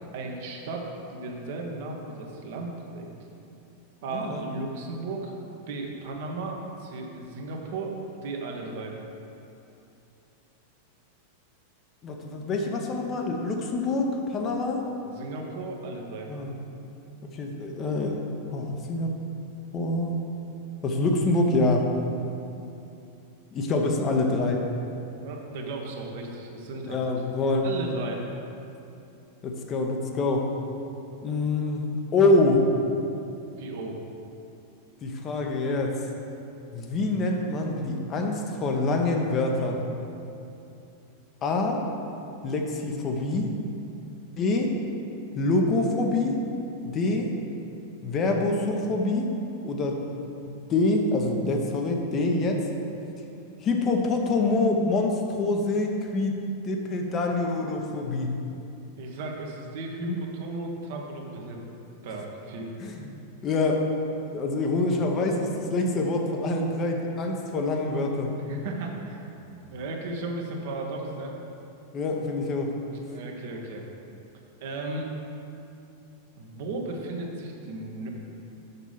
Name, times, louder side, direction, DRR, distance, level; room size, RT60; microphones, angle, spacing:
voice 1, 0.1-0.8 1.1-3.1 4.0-5.3 5.7-7.9 8.2-9.0 15.1-16.3 25.2-27.0 27.6-28.3 33.6-34.0 59.0-61.6 62.0-62.7 68.5-71.3 72.9-73.8 74.6-75.1 76.4-78.1, right 3 dB, 50° right, 1 dB, 1.1 m, -35 dB
voice 2, 12.0-14.8 16.3-16.5 17.3-18.1 18.5-19.1 19.7-20.1 20.8-21.9 23.5-24.6 26.8-27.7 29.4-30.5 31.2-31.8 32.1-32.7 35.0-36.0 36.7-39.8 41.4-41.8 42.4-43.5 44.4-44.7 45.3-46.3 46.8-47.3 48.0-49.3 49.6-50.0 50.7-52.6 53.6-58.4 60.0-60.2 62.8-63.1 63.4-63.8 64.3-68.3 71.9-72.7, left 2 dB, 30° left, 2 dB, 0.9 m, -25 dB
6.8 x 6.0 x 5.6 m, 2.7 s
figure-of-eight pair, 90°, 0 cm